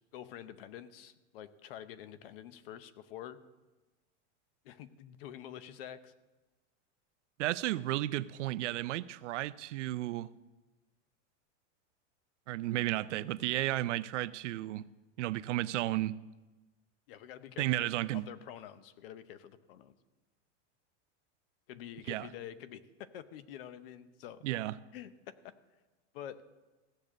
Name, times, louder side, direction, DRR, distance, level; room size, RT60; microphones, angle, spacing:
voice 1, 0.1-3.4 4.6-6.1 17.1-19.9 21.7-24.4 24.9-25.5 26.1-26.4, left 10 dB, 55° left, 0.8 m, -47 dB
voice 2, 7.4-10.3 12.5-14.8 15.2-16.1 17.6-18.2 22.1-22.3 24.4-24.7, right 16 dB, 85° right, 0.6 m, -33 dB
16.0 x 6.7 x 7.4 m
supercardioid pair, 175°, 35 cm